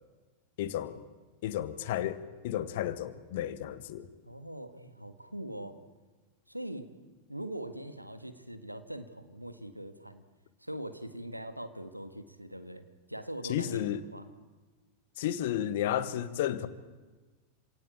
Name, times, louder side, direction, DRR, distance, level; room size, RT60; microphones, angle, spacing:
voice 1, 0.6-1.0 1.4-4.1 13.5-14.0 15.2-16.7, left 11 dB, 55° left, 1.4 m, -32 dB
voice 2, 4.2-5.8 6.5-6.9 7.3-10.2 10.6-14.3, right 1 dB, 90° right, 1.6 m, -42 dB
27.0 x 17.5 x 8.7 m
figure-of-eight pair, 90°, 0 cm